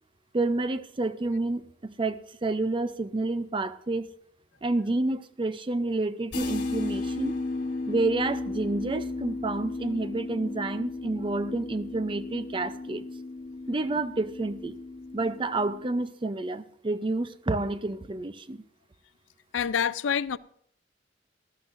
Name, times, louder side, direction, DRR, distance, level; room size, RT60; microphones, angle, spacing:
voice 1, 0.3-4.1 4.6-7.3 7.9-13.0 13.7-14.7 15.1-18.6, right 2 dB, 25° right, 0.5 m, -29 dB
sound 1, 6.3-15.9, left 2 dB, 60° left, 3.2 m, -35 dB
voice 2, 19.5-20.4, left 7 dB, 80° left, 0.4 m, -26 dB
19.0 x 13.0 x 2.6 m
head